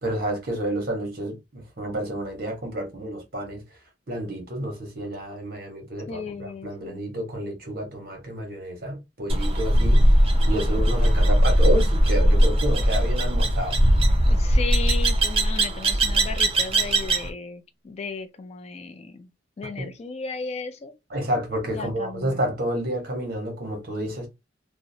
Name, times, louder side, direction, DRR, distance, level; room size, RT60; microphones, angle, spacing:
voice 1, 0.0-3.6 4.1-10.2 10.5-13.8 19.8-19.9 21.1-24.3, right 1 dB, 55° right, 1.1 m, -30 dB
voice 2, 6.1-7.1 14.2-19.3 19.6-20.9 21.7-22.4, left 4 dB, 35° left, 0.3 m, -35 dB
sound 1, 9.3-17.3, right 1 dB, 30° right, 0.5 m, -20 dB
2.6 x 2.1 x 2.7 m
head